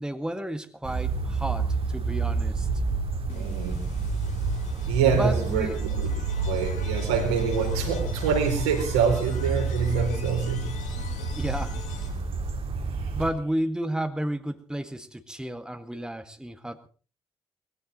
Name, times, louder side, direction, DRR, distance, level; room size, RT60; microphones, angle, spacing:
voice 1, 0.0-2.7 5.1-5.8 11.3-11.8 13.2-16.9, right 1 dB, 5° right, 8 dB, 1.8 m, -32 dB
sound 1, 0.8-13.3, right 4 dB, 45° right, 2.5 m, -29 dB
sound 2, 3.3-12.4, left 5 dB, 65° left, 3.2 m, -41 dB
voice 2, 3.3-3.9 4.9-6.1 6.4-10.8 13.0-13.1, right 6 dB, 75° right, 2 dB, 4.6 m, -26 dB
21.0 x 16.5 x 4.0 m, 0.39 s
figure-of-eight pair, 45°, 13 cm